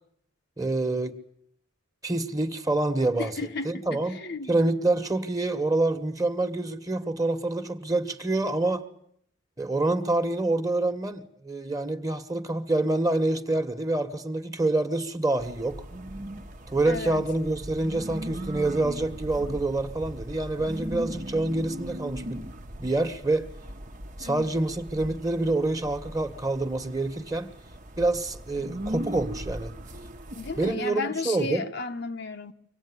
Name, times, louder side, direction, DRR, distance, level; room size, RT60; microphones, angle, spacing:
voice 1, 0.6-1.2 2.0-3.3 3.6-4.2 4.5-8.9 9.6-15.8 16.7-22.4 22.8-23.5 24.2-27.5 28.0-29.7 30.6-31.6, right 2 dB, 20° right, 1.5 m, -27 dB
voice 2, 3.2-4.6 16.8-17.3 24.2-24.5 30.3-32.5, left 3 dB, 60° left, 1.1 m, -34 dB
sound 1, 15.4-30.8, equal, 40° right, 1.2 m, -39 dB
24.5 x 18.0 x 9.9 m
head